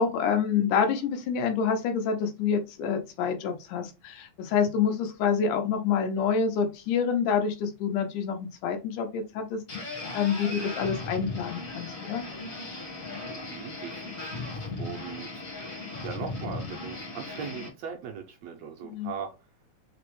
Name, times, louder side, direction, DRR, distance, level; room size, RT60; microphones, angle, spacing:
voice 1, 0.0-12.2 18.8-19.1, left 6 dB, 90° left, 2.2 m, -27 dB
sound 1, 9.7-17.7, left 3 dB, 65° left, 0.8 m, -37 dB
voice 2, 13.3-19.5, right 7 dB, 80° right, 1.5 m, -40 dB
5.1 x 2.0 x 3.0 m
omnidirectional pair, 3.4 m